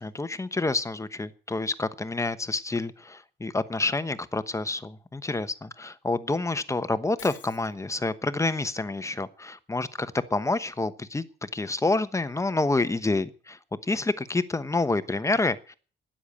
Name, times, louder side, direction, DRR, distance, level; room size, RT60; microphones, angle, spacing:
voice 1, 0.0-13.6 13.9-15.8, left 2 dB, 15° left, 13 dB, 1.1 m, -28 dB
Shatter, 7.2-7.7, left 12 dB, 90° left, 1.4 m, -47 dB
13.0 x 10.0 x 8.6 m, 0.40 s
cardioid pair, 110°, 18 cm